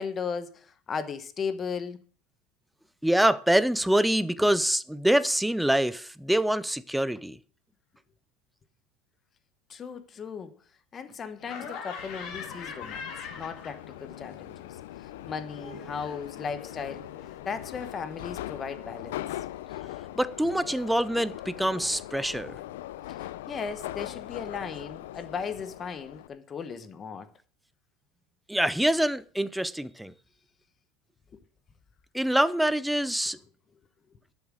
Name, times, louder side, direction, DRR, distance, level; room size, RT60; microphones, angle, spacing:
voice 1, 0.0-2.0 9.7-10.5 10.9-14.7 15.3-17.1 17.5-19.2 23.1-27.3 31.3-31.4, left 6 dB, 20° left, 1.0 m, -36 dB
voice 2, 3.0-7.4 20.2-22.6 28.5-30.1 32.1-33.4, right 1 dB, ahead, 0.5 m, -25 dB
Laughter, 11.4-14.2 14.5-17.4, left 6 dB, 35° left, 2.7 m, -43 dB
Subway metro underground, 12.0-26.3, left 14 dB, 90° left, 0.6 m, -41 dB
12.0 x 7.3 x 6.3 m
supercardioid pair, 170°, 0 cm